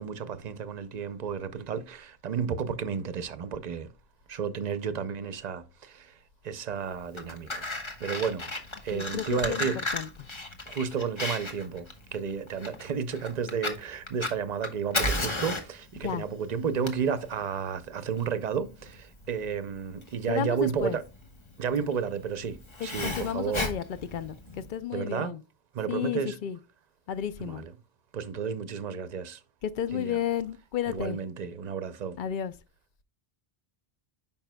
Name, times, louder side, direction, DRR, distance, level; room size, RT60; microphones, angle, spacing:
voice 1, 0.0-3.9 4.3-6.1 6.4-8.4 8.8-9.8 10.7-21.0 21.6-23.7 24.9-25.3 25.7-26.4 27.4-27.7 28.1-29.4 29.9-30.2 30.9-32.2, right 6 dB, 50° right, 0.7 m, -32 dB
Fire, 7.0-24.7, left 1 dB, 30° left, 1.0 m, -35 dB
voice 2, 8.9-10.1 16.0-16.2 20.3-21.0 22.8-25.4 25.9-26.6 27.1-27.6 29.6-31.2 32.2-32.5, left 9 dB, 60° left, 0.7 m, -32 dB
9.0 x 5.6 x 2.2 m
omnidirectional pair, 1.0 m